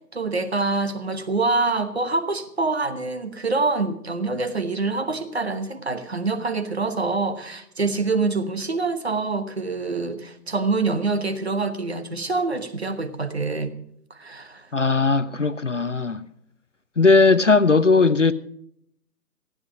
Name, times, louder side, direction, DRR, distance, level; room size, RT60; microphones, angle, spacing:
voice 1, 0.1-13.7 14.1-14.7, right 3 dB, 40° right, 1.0 m, -25 dB
voice 2, 14.7-16.2 17.0-18.3, left 4 dB, 50° left, 0.5 m, -18 dB
15.5 x 9.4 x 6.1 m
figure-of-eight pair, 170°, 48 cm